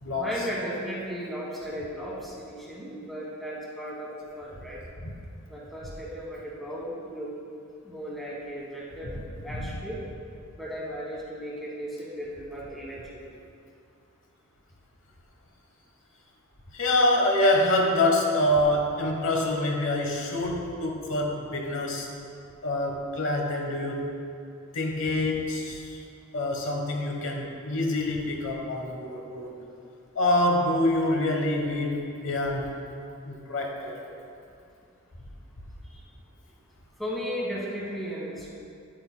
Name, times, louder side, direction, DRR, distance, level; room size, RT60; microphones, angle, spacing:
voice 1, 0.1-4.8 5.5-7.3 7.8-9.2 9.4-10.0 10.5-13.0 35.8-36.0 37.0-38.5, equal, ahead, -6 dB, 1.4 m, -35 dB
voice 2, 16.7-22.1 22.6-24.0 24.7-26.0 26.3-29.5 30.1-32.7 33.2-33.9, left 1 dB, 60° left, 0 dB, 1.1 m, -26 dB
10.0 x 7.7 x 2.2 m, 2.5 s
head